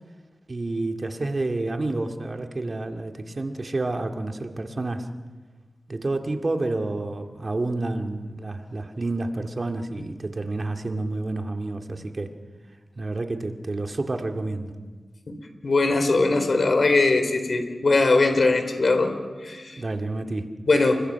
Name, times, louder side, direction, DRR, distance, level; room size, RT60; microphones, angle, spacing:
voice 1, 0.5-5.1 5.9-12.3 13.0-14.7 19.8-20.5, right 2 dB, 40° right, 5 dB, 2.2 m, -29 dB
voice 2, 15.6-19.1 19.4-19.8 20.7-21.0, left 3 dB, 60° left, 7 dB, 4.0 m, -20 dB
29.5 x 24.0 x 5.9 m, 1.4 s
wide cardioid pair, 70°, 0 cm